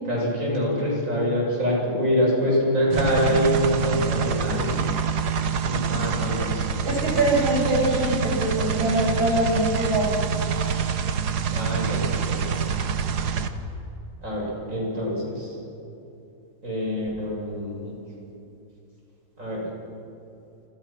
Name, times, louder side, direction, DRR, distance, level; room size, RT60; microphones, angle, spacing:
voice 1, 0.0-4.9 5.6-7.0 11.5-12.6 14.2-15.5 16.6-17.9 19.4-19.7, equal, 35° right, -3 dB, 7.8 m, -25 dB
sound 1, 2.9-13.5, right 7 dB, 55° right, 1.6 m, -26 dB
voice 2, 6.8-10.1, right 1 dB, 70° right, -2 dB, 8.3 m, -23 dB
29.5 x 26.5 x 6.1 m, 2.7 s
omnidirectional pair, 2.3 m